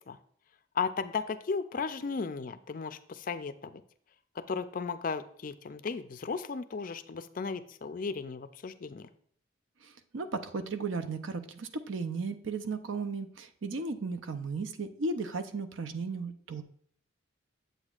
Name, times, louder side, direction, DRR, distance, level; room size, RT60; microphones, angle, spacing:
voice 1, 0.7-3.8 4.4-9.1, left 5 dB, 40° left, 12 dB, 0.4 m, -35 dB
voice 2, 9.8-16.6, right 4 dB, 75° right, 9 dB, 0.6 m, -35 dB
8.0 x 7.9 x 2.4 m, 0.62 s
head